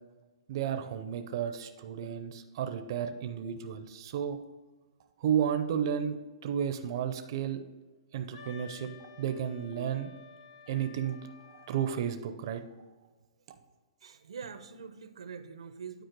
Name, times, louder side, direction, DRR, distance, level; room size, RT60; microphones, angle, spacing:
voice 1, 0.5-4.4 5.2-7.6 8.1-8.9 9.2-10.1 10.7-11.2 11.5-12.6, right 9 dB, 50° right, 8 dB, 0.6 m, -32 dB
Wind instrument woodwind instrument, 8.3-12.2, left 6 dB, 55° left, 0.9 m, -53 dB
voice 2, 14.0-16.0, right 6 dB, 90° right, 10 dB, 0.8 m, -44 dB
9.2 x 4.4 x 4.6 m, 1.3 s
hypercardioid pair, 155°, 3 cm